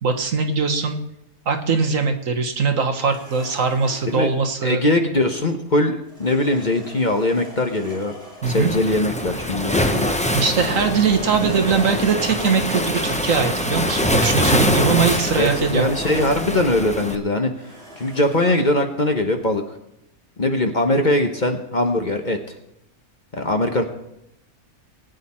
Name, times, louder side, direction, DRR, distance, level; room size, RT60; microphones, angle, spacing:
voice 1, 0.0-1.0 1.5-4.8 8.4-8.7 10.3-15.9, right 5 dB, 60° right, 5 dB, 1.6 m, -21 dB
sound 1, 2.9-4.4 6.1-8.7 9.5-16.7 17.5-18.8, equal, 45° right, 6.2 m, -41 dB
voice 2, 4.6-8.1 8.5-10.1 14.8-15.0 15.4-19.6 20.4-22.4 23.3-23.8, left 1 dB, 35° left, 5 dB, 1.1 m, -21 dB
Waves surf, 8.4-17.2, equal, 5° left, 0.7 m, -24 dB
20.5 x 9.2 x 4.3 m, 0.82 s
omnidirectional pair, 1.6 m